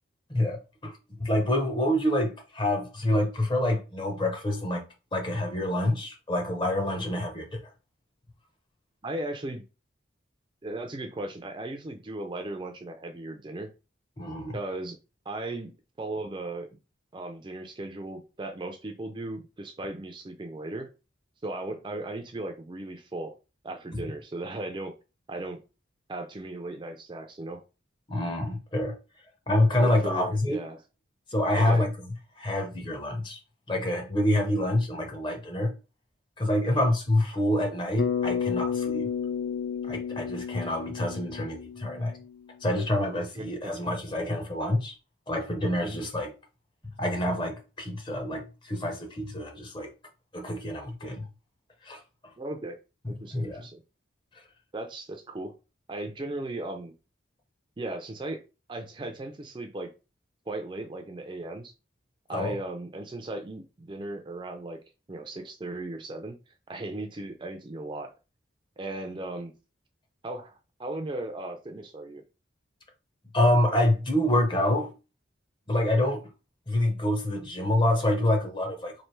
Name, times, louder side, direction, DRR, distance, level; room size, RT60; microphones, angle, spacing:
voice 1, 0.3-4.8 5.1-7.5 14.2-14.6 23.9-24.1 28.1-28.9 29.5-30.6 31.3-32.1 32.4-33.4 33.7-35.7 36.4-39.1 39.8-42.1 42.6-44.9 45.3-46.3 47.0-49.9 50.3-51.3 51.8-52.0 53.0-53.6 62.3-62.6 73.3-74.9 75.7-76.2 76.7-78.9, left 1 dB, 25° left, 0.7 m, -27 dB
voice 2, 9.0-9.6 10.6-13.7 14.5-15.0 15.3-15.7 16.0-16.7 17.1-20.9 21.4-23.4 23.6-24.9 25.3-25.6 26.1-27.6 29.8-30.8 31.5-31.9 36.6-36.9 43.4-43.8 45.8-46.0 52.4-52.8 53.1-53.8 54.7-55.5 55.9-56.9 57.8-58.4 58.7-59.9 60.5-61.7 62.3-64.8 65.1-66.4 66.7-68.1 68.8-69.5 70.2-72.2, right 2 dB, 25° right, 0.4 m, -37 dB
Bass guitar, 38.0-42.3, left 7 dB, 60° left, 0.5 m, -31 dB
3.2 x 2.5 x 4.4 m
head